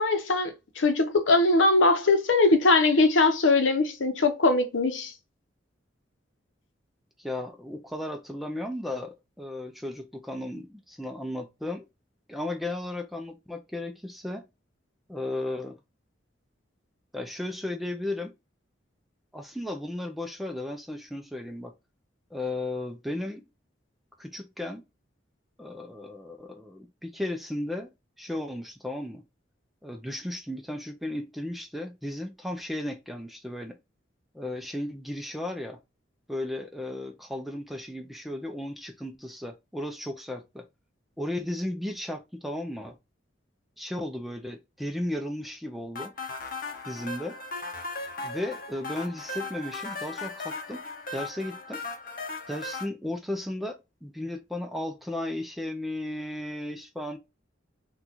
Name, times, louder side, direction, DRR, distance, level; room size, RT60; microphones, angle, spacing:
voice 1, 0.0-5.1, left 3 dB, 85° left, 0.8 m, -21 dB
voice 2, 7.2-11.9 12.3-14.4 15.1-15.8 17.1-18.3 19.3-21.7 22.3-23.4 24.2-24.8 25.6-27.9 28.2-29.2 29.8-33.8 34.3-35.8 36.3-40.7 41.2-43.0 43.8-46.1 46.9-47.4 48.2-50.8 51.1-51.8 52.5-57.2, left 1 dB, ahead, 0.5 m, -35 dB
sound 1, 46.0-52.9, left 3 dB, 50° left, 0.8 m, -37 dB
3.8 x 2.4 x 2.9 m
head